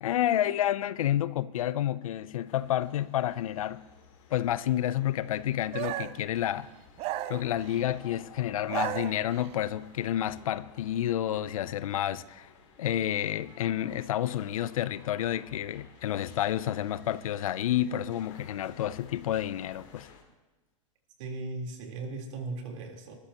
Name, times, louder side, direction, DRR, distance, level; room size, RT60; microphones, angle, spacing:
voice 1, 0.0-3.8 4.3-6.7 7.3-12.5 12.8-20.1, left 12 dB, 80° left, 0.6 m, -30 dB
sound 1, 2.5-20.2, left 6 dB, 65° left, 3.1 m, -55 dB
sound 2, 5.7-6.3 7.0-7.9 8.5-9.6, right 14 dB, 35° right, 0.5 m, -35 dB
voice 2, 21.2-23.1, right 3 dB, 60° right, 3.8 m, -37 dB
21.0 x 14.0 x 3.0 m
hypercardioid pair, 130°, 17 cm